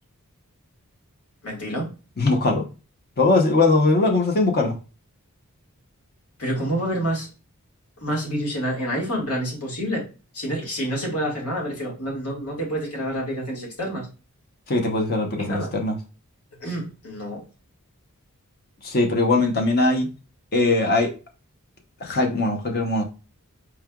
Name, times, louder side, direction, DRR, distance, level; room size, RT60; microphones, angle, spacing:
voice 1, 1.4-1.9 6.4-7.3 8.0-10.0 10.3-14.1 15.4-15.7 16.6-17.4, equal, 75° left, 1.8 m, -28 dB
voice 2, 2.2-2.7 3.2-4.7 14.7-16.0 18.8-20.1 20.5-21.1 22.0-23.0, left 2 dB, 45° left, 0.7 m, -20 dB
4.6 x 3.2 x 2.3 m
head